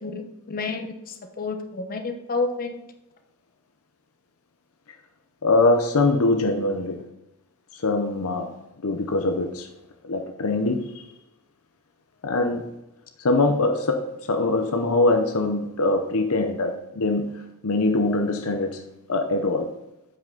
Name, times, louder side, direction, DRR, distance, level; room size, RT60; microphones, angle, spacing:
voice 1, 0.0-2.8, left 3 dB, 40° left, 5 dB, 1.0 m, -30 dB
voice 2, 5.4-7.0 7.7-8.5 8.8-9.7 10.0-11.0 12.2-12.7 13.2-18.8 19.1-19.7, left 2 dB, 70° left, 5 dB, 0.7 m, -23 dB
8.6 x 5.8 x 3.9 m, 0.88 s
head